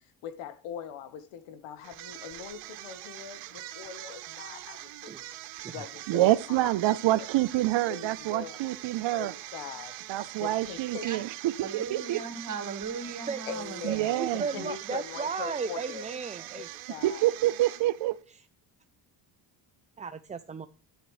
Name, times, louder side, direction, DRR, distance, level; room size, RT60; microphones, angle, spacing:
voice 1, 0.0-5.1 5.7-6.3 6.6-7.3 7.8-8.8 9.1-9.9 10.4-11.0 13.5-16.1 16.5-17.3, left 8 dB, 80° left, 1.3 m, -42 dB
sound 1, 1.8-18.2, right 15 dB, 90° right, 0.9 m, -43 dB
voice 2, 6.1-9.3 10.1-12.2 13.8-14.5 17.0-18.2, right 16 dB, 60° right, 0.6 m, -27 dB
voice 3, 11.6-14.1, right 5 dB, 35° right, 2.0 m, -38 dB
voice 4, 13.9-16.7 20.0-20.7, right 5 dB, 15° right, 0.4 m, -35 dB
10.5 x 9.1 x 3.1 m
cardioid pair, 80°, 49 cm